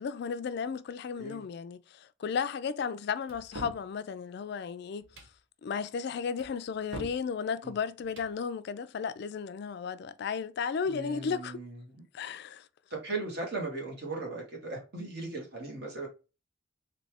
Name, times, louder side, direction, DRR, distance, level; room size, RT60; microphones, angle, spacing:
voice 1, 0.0-5.1 5.6-11.6 12.1-12.7, left 6 dB, 55° left, 0.3 m, -34 dB
sound 1, 3.3-3.9 5.0-5.4 6.4-7.2 8.0-8.3, right 1 dB, 75° right, 1.0 m, -44 dB
voice 2, 10.9-11.8 12.9-16.1, right 3 dB, 55° right, 1.8 m, -37 dB
4.1 x 2.7 x 3.3 m
head